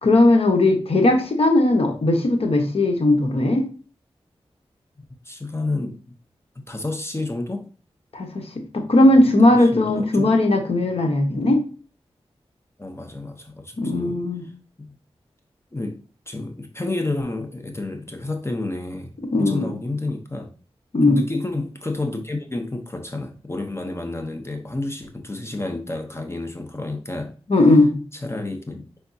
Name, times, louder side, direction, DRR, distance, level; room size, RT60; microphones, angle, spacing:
voice 1, 0.0-3.7 8.1-8.5 8.7-11.6 13.8-14.4 19.3-19.8 20.9-21.2 27.5-27.9, left 2 dB, 65° left, 4 dB, 1.1 m, -18 dB
voice 2, 5.2-6.1 6.7-7.7 9.1-9.2 9.5-10.4 12.8-14.2 14.8-15.0 15.7-16.0 16.3-20.5 21.0-27.3 28.1-29.0, left 2 dB, 25° left, 4 dB, 0.8 m, -30 dB
5.7 x 3.5 x 2.7 m, 0.37 s
cardioid pair, 45°, 11 cm